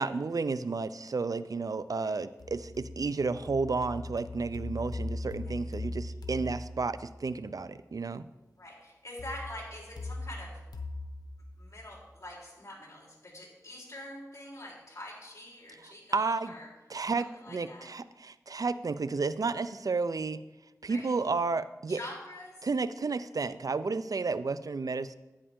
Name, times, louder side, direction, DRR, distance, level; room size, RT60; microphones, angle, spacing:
voice 1, 0.0-8.3 15.8-16.5 16.9-20.4 20.8-22.0 22.6-25.2, right 4 dB, 65° right, 14 dB, 0.5 m, -32 dB
sound 1, 2.4-7.4 9.2-12.2, left 2 dB, 90° left, 0.8 m, -40 dB
voice 2, 8.6-10.6 11.6-16.7 17.2-17.9 20.9-21.3 21.9-22.6, left 1 dB, 50° left, -3 dB, 3.9 m, -45 dB
11.0 x 9.8 x 3.7 m, 1.1 s
cardioid pair, 45°, 7 cm